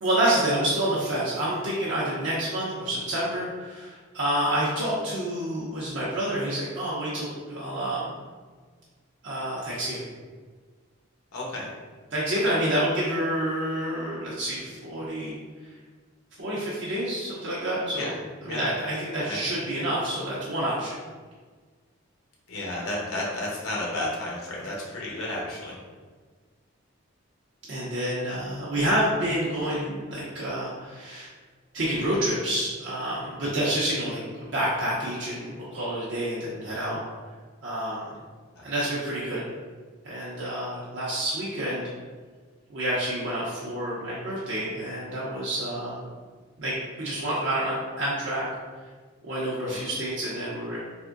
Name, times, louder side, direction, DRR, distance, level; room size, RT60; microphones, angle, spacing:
voice 1, 0.0-8.1 9.2-10.1 12.1-15.4 16.4-18.1 18.4-20.9 27.7-31.3 31.7-37.0 37.6-38.1 38.6-39.4 40.0-41.8 42.7-46.1 46.6-48.4 49.2-50.8, right 1 dB, 60° right, -8 dB, 0.6 m, -28 dB
voice 2, 11.3-11.7 18.0-18.1 18.5-18.7 19.3-19.4 22.5-25.8, left 1 dB, 90° left, -4 dB, 0.9 m, -32 dB
3.5 x 2.6 x 2.5 m, 1.5 s
head